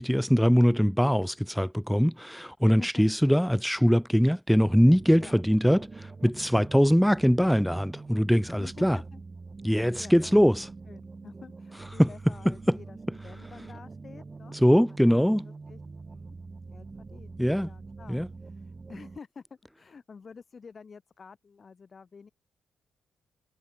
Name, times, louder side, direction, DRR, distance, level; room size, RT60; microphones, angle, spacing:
voice 1, 0.0-9.0 9.6-10.7 12.0-12.1 12.5-12.8 14.6-15.5 17.4-17.7 18.1-18.3, equal, ahead, 0.3 m, -22 dB
voice 2, 2.6-3.1 5.2-5.3 8.5-9.2 9.7-10.5 10.9-16.4 16.7-22.3, left 5 dB, 35° left, 4.0 m, -49 dB
sound 1, 4.5-19.2, right 3 dB, 25° right, 3.5 m, -44 dB
cardioid pair, 145°, 0 cm